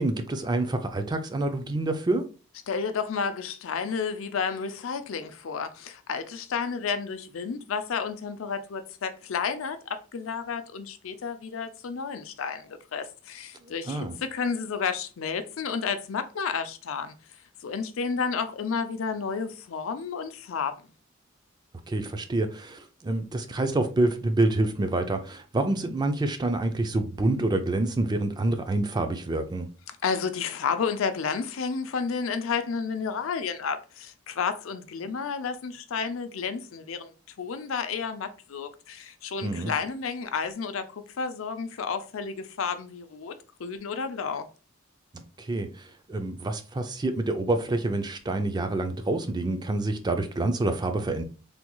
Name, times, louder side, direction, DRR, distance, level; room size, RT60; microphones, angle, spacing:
voice 1, 0.0-2.2 13.6-14.2 21.9-29.7 39.4-39.7 45.1-51.2, right 2 dB, 20° right, 0.3 m, -27 dB
voice 2, 2.7-17.1 17.6-20.7 30.0-37.1 37.4-43.3 43.6-44.5, left 5 dB, 85° left, 0.4 m, -31 dB
3.4 x 2.3 x 3.0 m
head